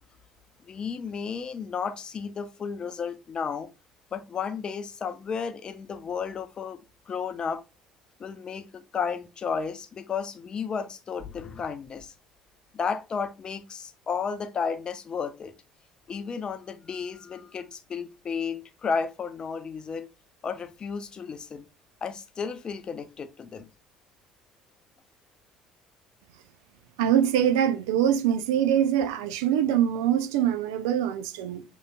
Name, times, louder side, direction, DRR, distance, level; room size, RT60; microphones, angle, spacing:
voice 1, 0.7-3.7 4.1-6.8 7.1-7.6 8.2-12.1 12.7-15.5 16.1-20.1 20.4-21.7 22.0-23.7, left 6 dB, 35° left, 0.6 m, -33 dB
voice 2, 27.0-31.6, right 10 dB, 65° right, 0.4 m, -24 dB
6.4 x 3.0 x 2.3 m
figure-of-eight pair, 55°, 3 cm